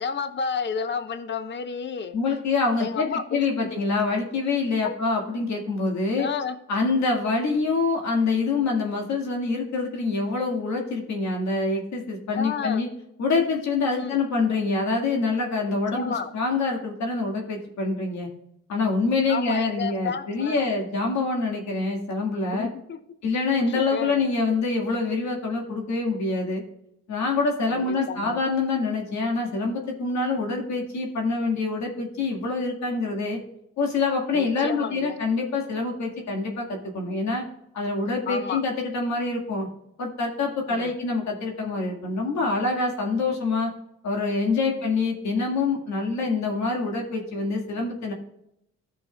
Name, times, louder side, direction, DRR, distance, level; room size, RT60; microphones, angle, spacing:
voice 1, 0.0-2.2 2.8-3.7 4.8-4.9 6.2-6.6 12.3-12.8 13.9-14.2 15.9-16.3 19.3-20.7 22.5-23.0 23.6-24.2 27.7-28.4 34.3-35.2 38.3-38.6 40.7-40.9, left 5 dB, 35° left, 9 dB, 0.9 m, -31 dB
voice 2, 2.1-6.3 6.7-12.9 13.2-18.3 18.7-22.7 23.2-26.6 27.1-33.4 33.8-37.4 37.7-39.7 40.0-43.7 44.0-48.1, left 3 dB, 65° left, 1 dB, 2.0 m, -26 dB
14.5 x 6.2 x 2.3 m, 0.79 s
cardioid pair, 90°, 30 cm